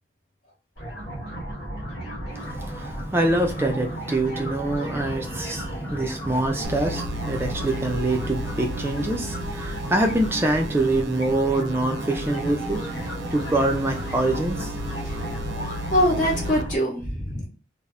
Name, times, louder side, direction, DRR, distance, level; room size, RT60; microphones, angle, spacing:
sound 1, 0.8-16.8, right 1 dB, 65° left, 1.0 m, -33 dB
voice 1, 2.3-12.8 13.3-14.8, right 2 dB, 15° right, 3 dB, 0.3 m, -25 dB
sound 2, 6.6-16.6, equal, 85° right, 0.4 m, -35 dB
voice 2, 15.9-17.5, equal, 45° left, -2 dB, 0.7 m, -23 dB
2.0 x 2.0 x 3.5 m, 0.35 s
head